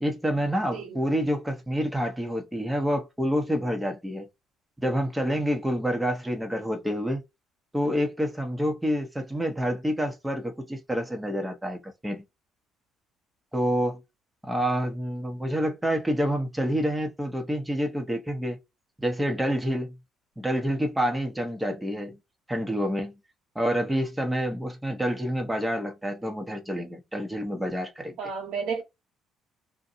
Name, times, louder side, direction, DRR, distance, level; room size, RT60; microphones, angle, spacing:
voice 1, 0.0-4.3 4.8-7.2 7.7-12.2 13.5-14.0 14.4-18.6 19.0-19.9 20.4-22.2 22.5-23.1 23.5-28.2, equal, 10° right, 0.9 m, -28 dB
voice 2, 28.2-28.8, right 5 dB, 75° right, 1.2 m, -31 dB
2.7 x 2.2 x 2.6 m
supercardioid pair, 70°, 0 cm